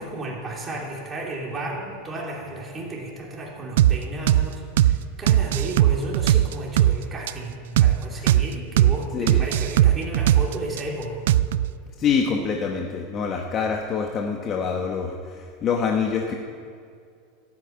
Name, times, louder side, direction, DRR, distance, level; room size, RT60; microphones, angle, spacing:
voice 1, 0.0-11.2, right 1 dB, 20° right, -2 dB, 2.9 m, -33 dB
sound 1, 3.8-4.0 4.3-4.5 4.8-5.0 5.3-7.0 7.3-7.4 7.8-8.0 8.3-8.5 8.8-9.0 9.3-10.8 11.3-11.7, right 12 dB, 85° right, 0.4 m, -18 dB
voice 2, 9.1-9.4 12.0-16.3, left 6 dB, 30° left, 1 dB, 1.0 m, -26 dB
12.5 x 8.8 x 8.7 m, 2.3 s
supercardioid pair, 140°, 0 cm